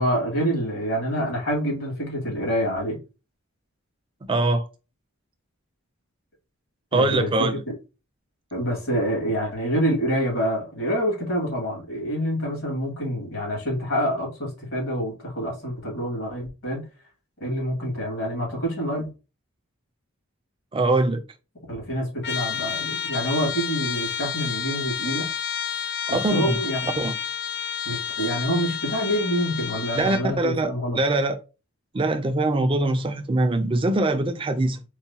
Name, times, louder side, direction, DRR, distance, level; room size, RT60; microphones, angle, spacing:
voice 1, 0.0-3.0 6.9-7.7 8.5-16.8 17.4-19.1 21.7-25.3 26.1-27.1 27.9-31.0, equal, 70° left, 2.1 m, -27 dB
voice 2, 4.3-4.6 6.9-7.6 20.7-21.2 26.1-26.6 27.0-27.1 29.9-31.4 31.9-34.8, right 2 dB, 25° right, 0.4 m, -23 dB
Trumpet, 22.2-30.3, left 8 dB, 50° left, 0.4 m, -30 dB
4.7 x 2.2 x 2.8 m
head